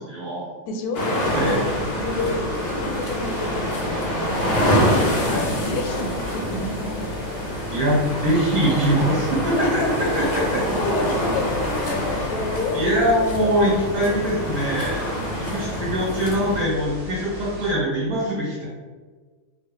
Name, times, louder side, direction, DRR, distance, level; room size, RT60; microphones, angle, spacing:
voice 1, 0.0-0.5 1.3-1.6 5.2-5.4 7.7-9.7 10.1-10.6 12.7-15.0 15.4-18.7, equal, 80° right, -7 dB, 1.6 m, -23 dB
voice 2, 0.7-1.6 2.0-4.8 5.3-7.1 9.6-10.5 10.8-12.8 13.2-13.7 15.6-15.7, left 3 dB, 75° left, 2 dB, 1.0 m, -30 dB
sound 1, 0.9-16.6, equal, 55° left, 0.7 m, -26 dB
sound 2, 1.2-17.7, left 3 dB, 45° right, 1.0 m, -37 dB
3.6 x 2.2 x 3.5 m, 1.4 s
omnidirectional pair, 1.8 m